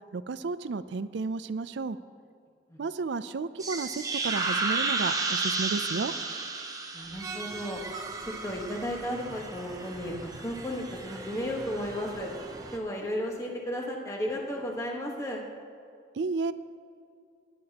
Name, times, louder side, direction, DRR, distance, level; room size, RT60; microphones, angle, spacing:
voice 1, 0.1-2.0 2.8-6.1 16.1-16.5, right 4 dB, 80° right, 14 dB, 0.4 m, -32 dB
sound 1, 3.6-12.8, right 3 dB, 20° right, 0.7 m, -33 dB
voice 2, 6.9-7.8 8.3-12.3 12.7-15.4, equal, 15° left, -1 dB, 1.3 m, -34 dB
19.0 x 11.0 x 2.9 m, 2.4 s
head